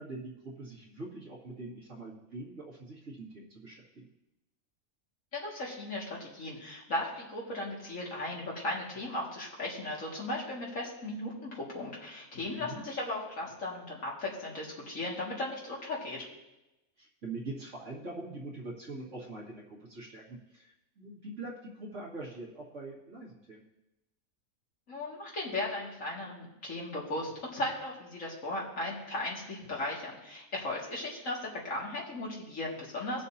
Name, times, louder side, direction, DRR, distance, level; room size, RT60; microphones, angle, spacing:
voice 1, 0.0-4.1 12.6-12.8 17.0-23.6, right 2 dB, 55° right, -4 dB, 2.5 m, -43 dB
voice 2, 5.3-16.3 24.9-33.2, left 2 dB, 60° left, -4 dB, 2.6 m, -36 dB
19.0 x 6.6 x 2.8 m, 0.96 s
omnidirectional pair, 1.5 m